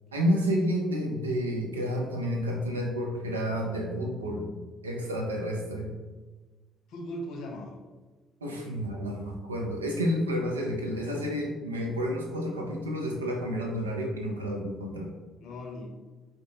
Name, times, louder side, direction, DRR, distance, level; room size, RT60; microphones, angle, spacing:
voice 1, 0.1-4.5 4.8-5.9 8.4-15.1, equal, 90° right, 1 dB, 0.4 m, -30 dB
voice 2, 6.9-7.8 8.4-8.8 15.4-15.9, equal, 65° left, 2 dB, 0.5 m, -39 dB
3.6 x 2.3 x 2.6 m, 1.3 s
figure-of-eight pair, 45°, 0 cm